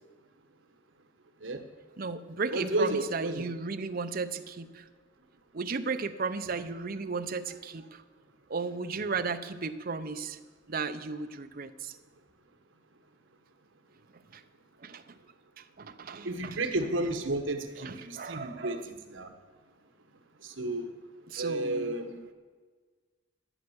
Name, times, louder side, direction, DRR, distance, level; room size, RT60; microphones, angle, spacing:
voice 1, 2.0-4.8 5.5-8.0 8.5-10.4 10.7-12.0 14.3-14.4 14.8-15.2 15.6-16.6 17.8-18.9 21.3-22.0, right 4 dB, 50° right, 9 dB, 0.7 m, -35 dB
voice 2, 2.5-3.4 16.2-19.3 20.4-21.0 21.4-22.2, right 2 dB, 80° right, 7 dB, 1.3 m, -32 dB
13.0 x 8.0 x 7.1 m, 1.5 s
head